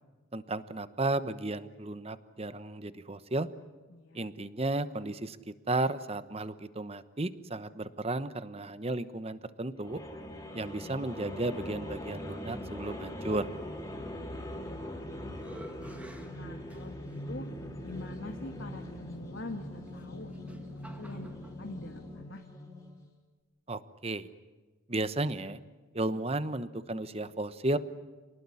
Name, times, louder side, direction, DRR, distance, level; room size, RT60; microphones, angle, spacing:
voice 1, 0.3-3.5 4.1-5.4 5.7-10.0 10.5-13.5 23.7-24.3 24.9-25.6 25.9-27.8, right 2 dB, 30° right, 13 dB, 1.0 m, -33 dB
voice 2, 3.9-4.2 10.7-11.1 16.3-17.5 17.8-22.4, left 2 dB, 70° left, 3 dB, 1.9 m, -45 dB
sound 1, 9.8-23.0, left 1 dB, 15° left, 3.7 m, -42 dB
sound 2, 14.5-15.0 15.4-17.2 18.0-18.1 19.9-21.6, equal, 5° right, 1.9 m, -52 dB
sound 3, 17.1-22.2, left 1 dB, 50° left, 2.0 m, -50 dB
28.0 x 19.0 x 9.9 m, 1.3 s
head